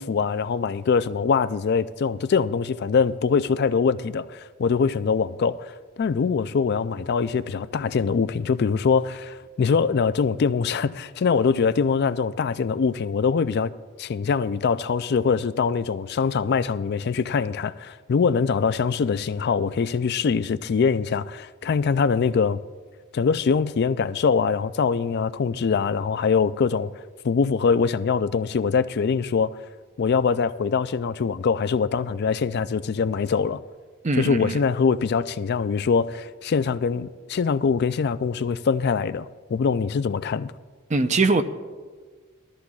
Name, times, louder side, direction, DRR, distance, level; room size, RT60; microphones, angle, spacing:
voice 1, 0.0-5.7 6.0-13.7 14.0-22.6 23.1-26.9 27.2-29.6 30.0-33.6 34.2-40.5, left 5 dB, 50° left, 0.4 m, -23 dB
voice 2, 34.0-34.5 40.9-41.4, right 3 dB, 35° right, 0.5 m, -21 dB
20.0 x 13.5 x 2.4 m
head